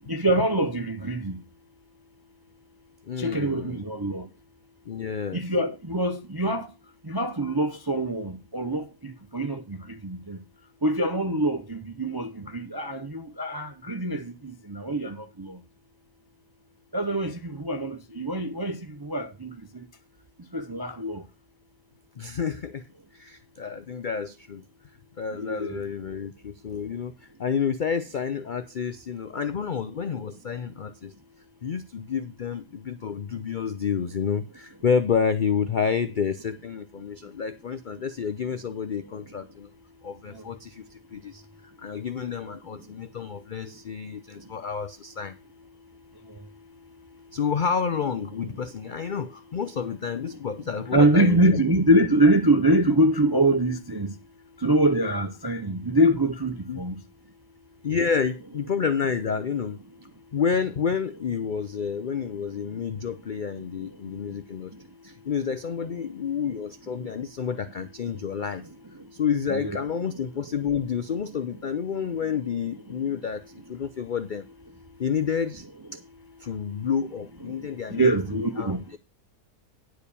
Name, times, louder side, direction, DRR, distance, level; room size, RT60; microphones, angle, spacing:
voice 1, 0.1-1.3 3.2-4.2 5.3-6.6 7.1-9.6 10.0-10.4 10.8-13.0 13.4-14.2 14.7-15.1 16.9-17.3 17.6-18.7 19.1-19.5 20.5-21.2 25.4-25.8 50.9-54.1 54.6-56.9 69.5-69.8 77.9-78.8, right 1 dB, 40° right, 0.3 m, -24 dB
voice 2, 3.1-3.8 4.9-5.4 22.2-22.8 23.1-24.6 25.2-31.1 31.6-39.7 40.0-41.4 41.8-45.3 47.3-51.6 56.7-56.8 57.8-59.8 60.3-64.7 65.0-68.6 69.1-73.4 73.7-74.5 75.0-75.7 76.4-79.0, left 6 dB, 80° left, 0.4 m, -29 dB
10.0 x 4.9 x 6.7 m
omnidirectional pair, 1.7 m